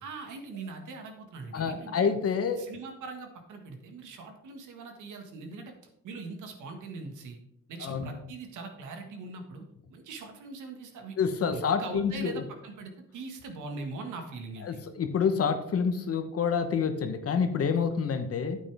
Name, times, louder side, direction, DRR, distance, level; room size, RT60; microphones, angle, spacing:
voice 1, 0.0-2.2 2.6-5.7 6.0-7.4 7.7-9.7 9.9-11.2 11.5-14.8, right 3 dB, 80° right, 4 dB, 1.8 m, -41 dB
voice 2, 1.5-2.6 7.8-8.1 11.2-12.4 14.6-18.6, left 6 dB, 50° left, 8 dB, 1.2 m, -28 dB
9.0 x 8.6 x 3.5 m, 0.77 s
cardioid pair, 90°, 30 cm